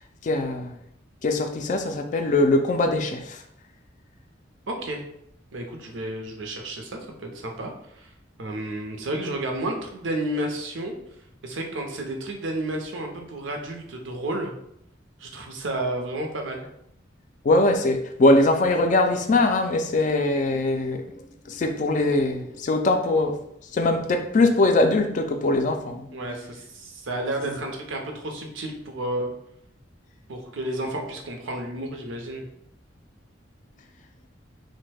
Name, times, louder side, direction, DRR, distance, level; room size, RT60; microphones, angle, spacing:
voice 1, 0.2-0.8 1.2-3.4 17.4-23.4 23.7-26.2, left 2 dB, 40° left, 5 dB, 0.3 m, -22 dB
voice 2, 4.7-5.0 5.5-8.1 8.4-10.9 11.4-14.5 15.2-16.7 26.1-29.3 30.3-32.5, right 1 dB, 90° right, 2 dB, 0.6 m, -31 dB
3.0 x 2.1 x 3.3 m, 0.74 s
head